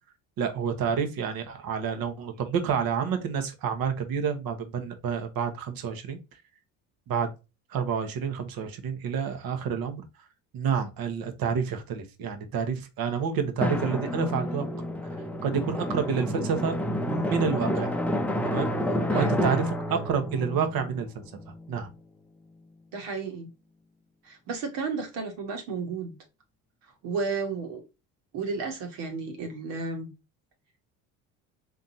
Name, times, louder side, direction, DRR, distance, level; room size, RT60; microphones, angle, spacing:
voice 1, 0.4-6.2 7.1-7.3 7.7-10.0 10.5-14.7 15.4-16.7 17.0-17.9 18.4-18.7 19.1-21.2 21.7-21.9, right 6 dB, 55° right, 1.2 m, -29 dB
Drum, 13.6-21.9, left 1 dB, 5° left, 0.6 m, -29 dB
voice 2, 22.9-23.5 24.2-26.1 27.0-27.8 28.3-30.1, right 4 dB, 75° right, 1.8 m, -33 dB
4.0 x 3.5 x 2.7 m
supercardioid pair, 80°, 43 cm